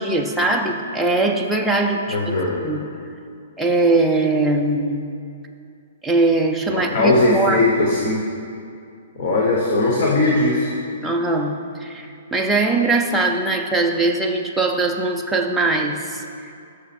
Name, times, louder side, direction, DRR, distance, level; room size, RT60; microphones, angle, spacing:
voice 1, 0.0-2.3 2.6-2.9 3.6-5.1 6.0-7.7 11.0-16.2, right 2 dB, ahead, -1 dB, 0.4 m, -21 dB
voice 2, 2.1-2.6 6.7-8.2 9.2-10.7, left 2 dB, 35° left, -3 dB, 1.0 m, -19 dB
11.0 x 6.5 x 4.3 m, 2.4 s
hypercardioid pair, 180°, 0 cm